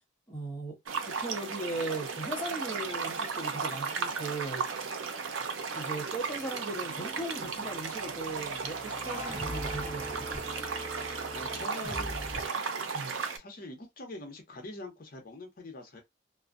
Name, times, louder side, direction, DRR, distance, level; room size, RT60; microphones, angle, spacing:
voice 1, 0.3-0.8 1.0-4.7 5.7-10.3 12.9-13.2, right 2 dB, 10° left, 0.7 m, -38 dB
sound 1, 0.9-13.4, right 5 dB, 90° right, 0.5 m, -35 dB
sound 2, 5.1-12.5, equal, 30° right, 1.0 m, -42 dB
voice 2, 11.3-12.2 13.4-16.0, left 1 dB, 50° left, 0.7 m, -44 dB
2.5 x 2.1 x 2.4 m
head